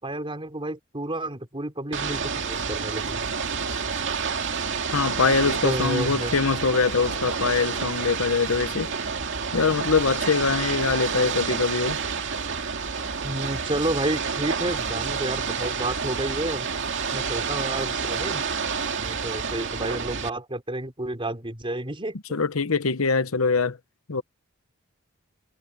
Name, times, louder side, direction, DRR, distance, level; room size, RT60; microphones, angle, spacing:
voice 1, 0.0-3.2 5.6-6.4 13.2-16.7 17.1-18.4 19.0-22.2, right 1 dB, 25° right, 4.2 m, -30 dB
Ocean / Boat Water vehicle, 1.9-20.3, right 5 dB, 60° right, 2.2 m, -29 dB
voice 2, 4.9-8.9 9.5-12.0 22.3-23.8 24.1-24.2, left 4 dB, 75° left, 1.0 m, -23 dB
head